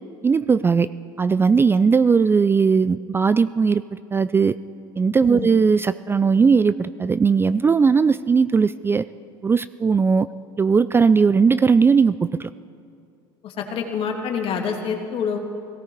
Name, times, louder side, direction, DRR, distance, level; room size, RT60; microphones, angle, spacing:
voice 1, 0.2-0.9 1.2-3.8 4.1-4.5 5.0-9.1 9.4-10.3 10.6-12.5, right 5 dB, 20° right, 15 dB, 0.4 m, -18 dB
voice 2, 13.4-15.4, left 6 dB, 50° left, 2 dB, 2.4 m, -27 dB
18.0 x 17.0 x 4.6 m, 2.5 s
hypercardioid pair, 75°, 12 cm